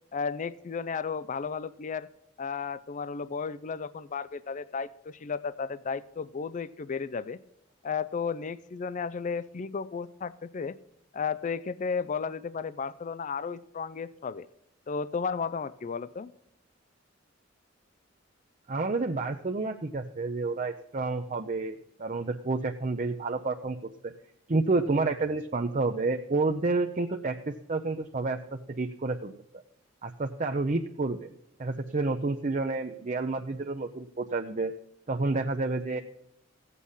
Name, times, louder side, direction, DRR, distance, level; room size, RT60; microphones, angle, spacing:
voice 1, 0.1-2.1 2.4-7.4 7.8-10.8 11.1-14.5 14.9-16.3, left 5 dB, 40° left, 17 dB, 0.4 m, -33 dB
voice 2, 18.7-24.1 24.5-29.3 30.0-31.3 31.6-34.7 35.1-36.0, right 3 dB, 40° right, 5 dB, 0.7 m, -29 dB
15.5 x 8.3 x 5.6 m, 0.79 s
head